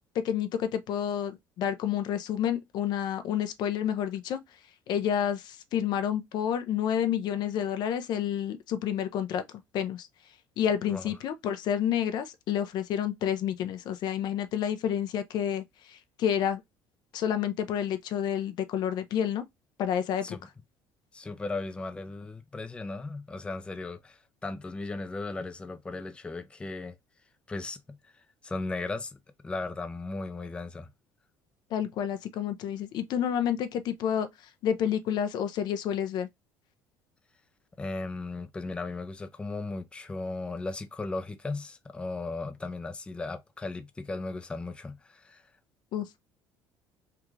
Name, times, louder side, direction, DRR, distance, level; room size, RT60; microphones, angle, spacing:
voice 1, 0.1-4.4 4.9-9.4 9.7-10.1 10.6-16.6 17.1-19.4 19.8-20.4 31.7-34.3 34.6-36.3 45.9-46.1, left 9 dB, 60° left, 0.6 m, -29 dB
voice 2, 21.1-27.0 27.5-27.8 28.1-30.9 37.8-45.4, left 3 dB, 15° left, 0.5 m, -36 dB
3.4 x 2.4 x 3.1 m
cardioid pair, 115°, 8 cm